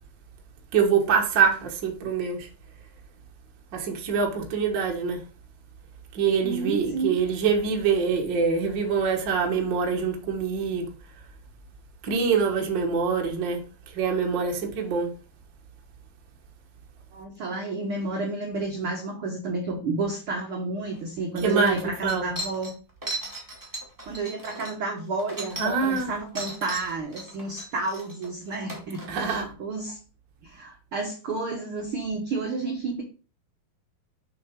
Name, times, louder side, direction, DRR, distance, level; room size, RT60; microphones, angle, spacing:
voice 1, 0.7-2.5 3.7-5.2 6.1-10.9 12.0-13.6 13.9-15.1 21.4-22.3 25.6-26.1 29.1-29.5, right 5 dB, 55° right, 1.3 m, -25 dB
voice 2, 6.4-7.2 17.1-22.7 24.1-30.0 30.4-33.0, right 3 dB, 75° right, 1.2 m, -31 dB
sound 1, 20.9-21.0 21.4-26.0 26.3-29.3, right 1 dB, 10° right, 1.2 m, -37 dB
6.6 x 6.3 x 3.6 m
omnidirectional pair, 4.1 m